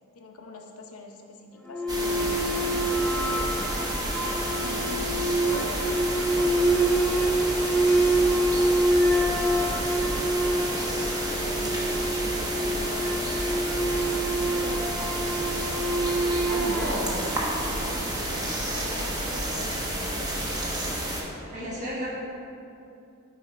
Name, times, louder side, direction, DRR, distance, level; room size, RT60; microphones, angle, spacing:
voice 1, 0.1-3.6 4.5-5.9 6.1-7.1 7.4-14.0 14.5-15.1 15.5-16.7 17.7-20.6 21.6-21.9, left 2 dB, 85° left, 2 dB, 0.8 m, -44 dB
sound 1, 1.7-18.3, right 1 dB, 5° left, 0.3 m, -26 dB
sound 2, 1.9-21.2, right 1 dB, 15° right, 0.9 m, -30 dB
voice 2, 16.5-17.2 21.5-22.1, equal, 35° right, -6 dB, 1.6 m, -32 dB
6.9 x 5.0 x 4.3 m, 2.6 s
head